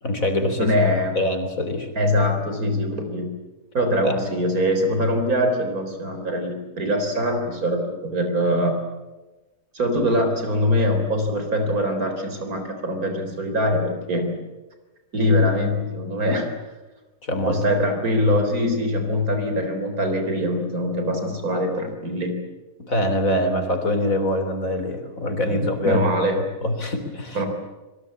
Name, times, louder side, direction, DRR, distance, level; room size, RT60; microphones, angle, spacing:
voice 1, 0.0-0.7 1.2-1.9 4.0-4.1 17.2-17.6 22.8-26.0 26.6-27.4, left 1 dB, 65° left, 7 dB, 4.1 m, -24 dB
voice 2, 0.6-1.2 2.0-3.3 3.7-8.8 9.7-14.4 15.1-16.5 17.4-22.4 25.5-26.4 27.3-27.5, left 1 dB, 80° right, 6 dB, 4.3 m, -23 dB
26.5 x 22.5 x 8.4 m, 1.2 s
omnidirectional pair, 1.5 m